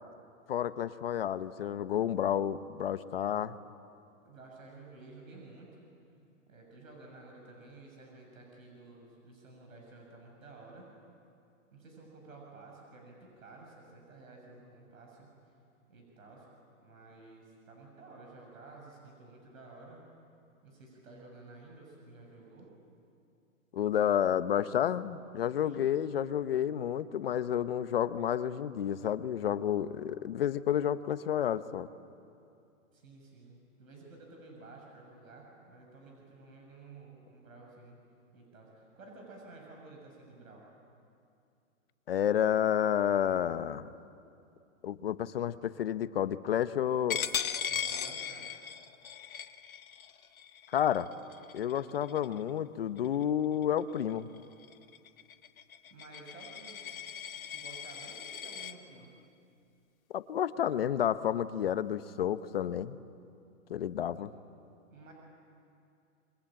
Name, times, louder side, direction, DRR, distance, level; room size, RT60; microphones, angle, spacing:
voice 1, 0.5-3.6 23.7-31.9 42.1-43.9 44.8-47.2 50.7-51.1 51.5-54.3 60.1-62.9 63.7-64.3, left 10 dB, 45° left, 13 dB, 0.8 m, -30 dB
voice 2, 4.2-5.9 6.5-10.9 11.7-15.3 15.9-16.5 16.8-20.0 20.6-22.7 25.6-25.8 32.9-38.0 38.3-40.6 47.7-48.5 55.9-57.1 57.5-59.1 64.2-64.3 64.9-65.1, right 3 dB, 75° right, 0 dB, 7.1 m, -52 dB
Coin (dropping), 47.1-52.5 53.0-53.2 53.6-58.7, left 8 dB, 85° left, 1.5 m, -39 dB
27.5 x 23.5 x 8.9 m, 2.5 s
hypercardioid pair, 170°, 41 cm